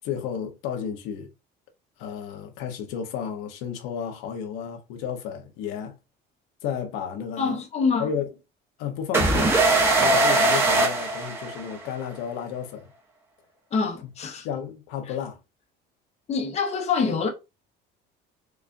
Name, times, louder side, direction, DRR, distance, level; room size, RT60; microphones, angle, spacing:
voice 1, 0.0-1.3 2.0-6.0 6.6-7.6 8.0-8.3 8.8-9.6 9.9-12.9 14.4-15.4, left 8 dB, 85° left, 0.8 m, -32 dB
voice 2, 7.4-8.1 10.0-10.2 13.7-14.5 16.3-17.3, left 5 dB, 30° left, 0.8 m, -26 dB
sound 1, 9.1-11.9, right 2 dB, 10° right, 0.9 m, -21 dB
4.8 x 2.4 x 2.5 m
cardioid pair, 145°, 21 cm